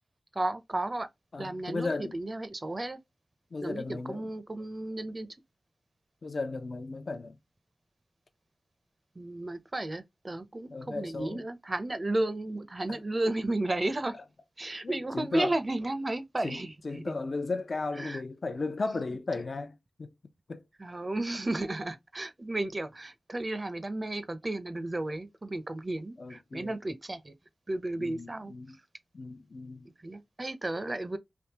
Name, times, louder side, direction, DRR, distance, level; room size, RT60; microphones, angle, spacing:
voice 1, 0.3-1.1 1.4-3.0 3.6-5.3 9.2-14.2 14.6-17.0 18.0-18.2 20.8-27.3 27.7-28.5 30.0-31.2, right 2 dB, 40° right, 0.6 m, -33 dB
voice 2, 1.3-2.1 3.5-4.3 6.2-7.4 10.7-11.4 12.9-13.0 14.8-15.5 16.4-20.1 20.5-20.6 26.2-26.8 28.0-28.8 29.1-29.9, left 3 dB, 60° left, 0.6 m, -35 dB
3.5 x 2.6 x 2.8 m
cardioid pair, 45°, 0 cm